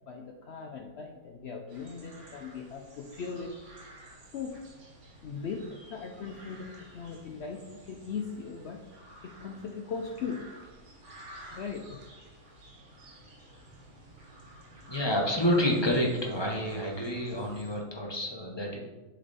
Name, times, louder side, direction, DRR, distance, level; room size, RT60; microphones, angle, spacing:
voice 1, 0.1-3.5 4.3-4.5 5.2-6.7 6.9-7.6 7.9-8.8 9.2-10.4 11.5-12.0, left 5 dB, 80° left, 3 dB, 0.5 m, -38 dB
sound 1, 1.7-17.8, right 1 dB, 50° right, 1.4 m, -52 dB
voice 2, 14.9-18.8, equal, 25° left, -1 dB, 0.6 m, -28 dB
6.7 x 4.3 x 4.0 m, 1.2 s
omnidirectional pair, 1.8 m